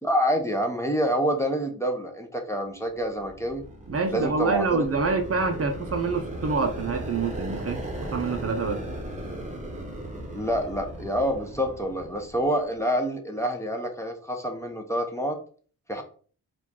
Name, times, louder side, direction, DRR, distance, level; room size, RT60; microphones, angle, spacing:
voice 1, 0.0-3.6 4.1-5.1 10.3-15.4 15.9-16.0, equal, 10° left, 3 dB, 0.7 m, -27 dB
sound 1, 2.9-12.7, right 1 dB, 20° right, 1.1 m, -37 dB
voice 2, 3.9-7.8 8.1-8.8, right 4 dB, 40° right, 5 dB, 0.6 m, -26 dB
4.4 x 2.4 x 3.7 m, 0.43 s
cardioid pair, 85°, 37 cm